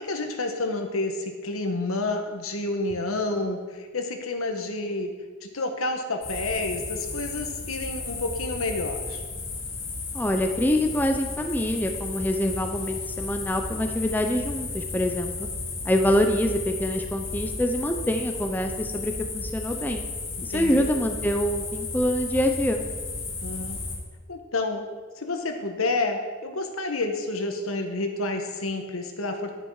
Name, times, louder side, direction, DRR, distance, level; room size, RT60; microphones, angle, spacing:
voice 1, 0.0-5.1 5.4-9.2 20.4-20.9 23.4-23.8 24.3-24.8 25.2-29.5, left 2 dB, 85° left, 5 dB, 1.4 m, -29 dB
sound 1, 6.2-24.0, left 3 dB, 65° left, 2.5 m, -34 dB
voice 2, 10.1-15.5 15.8-20.0 20.4-22.8, equal, 10° left, 4 dB, 0.7 m, -25 dB
10.5 x 10.0 x 4.8 m, 1.5 s
head